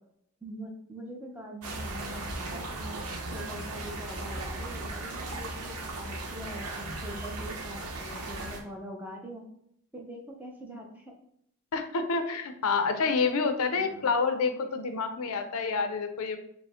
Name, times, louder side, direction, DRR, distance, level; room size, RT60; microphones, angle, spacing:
voice 1, 0.4-9.4 9.9-11.1 13.7-14.0, equal, 10° right, 0 dB, 0.5 m, -43 dB
sound 1, 1.6-8.6, right 2 dB, 90° right, 0.8 m, -37 dB
voice 2, 11.7-16.4, left 4 dB, 80° left, 8 dB, 0.5 m, -28 dB
4.9 x 2.1 x 3.5 m, 0.72 s
head